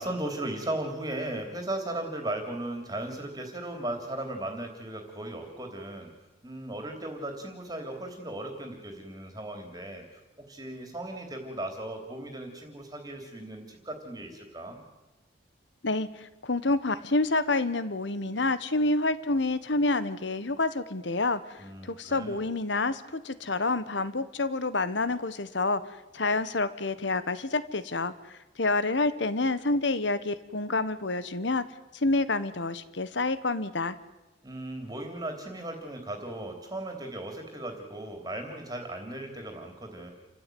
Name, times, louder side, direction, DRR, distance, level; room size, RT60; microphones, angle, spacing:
voice 1, 0.0-6.1 6.4-10.0 10.5-14.8 21.6-22.4 34.4-40.1, right 1 dB, 20° right, 4 dB, 3.2 m, -37 dB
voice 2, 15.8-25.8 26.1-31.6 31.9-34.0, left 2 dB, 65° left, 14 dB, 1.3 m, -28 dB
28.5 x 15.0 x 9.4 m, 1.1 s
head